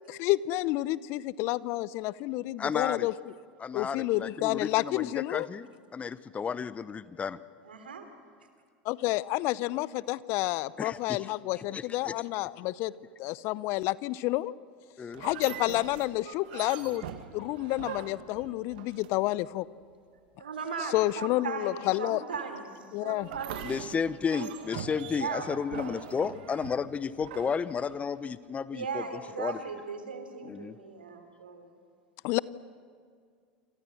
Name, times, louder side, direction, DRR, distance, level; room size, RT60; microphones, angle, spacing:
voice 1, 0.2-3.1 3.7-5.5 8.8-12.9 13.2-14.5 15.2-17.1 17.3-19.6 20.9-22.2 22.9-23.3 32.2-32.4, left 18 dB, 55° left, 20 dB, 0.7 m, -29 dB
voice 2, 2.6-3.1 3.6-7.4 10.8-12.1 15.0-15.2 23.6-29.6 30.4-30.8, left 6 dB, 25° left, 16 dB, 0.9 m, -33 dB
voice 3, 7.6-8.1 20.4-22.6 23.0-23.7 24.4-24.5 25.1-25.5 25.9-26.3 28.7-31.7, right 5 dB, 85° right, 7 dB, 3.5 m, -38 dB
sound 1, 15.1-19.4 23.2-28.3, right 10 dB, 70° right, 1.6 m, -43 dB
27.5 x 27.0 x 6.5 m, 2.1 s
hypercardioid pair, 80°, 5 cm